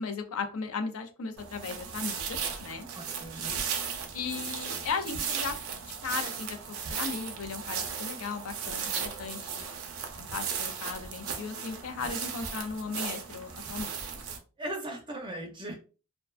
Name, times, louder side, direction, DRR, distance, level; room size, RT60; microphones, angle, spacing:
voice 1, 0.0-2.9 4.1-6.6 6.9-9.7 10.2-14.0, left 5 dB, 70° left, 8 dB, 0.4 m, -36 dB
sound 1, 1.4-14.4, right 6 dB, 70° right, 0.5 m, -36 dB
voice 2, 2.9-3.6 14.6-15.8, right 1 dB, 20° right, 1 dB, 0.5 m, -38 dB
2.4 x 2.2 x 2.3 m, 0.35 s
head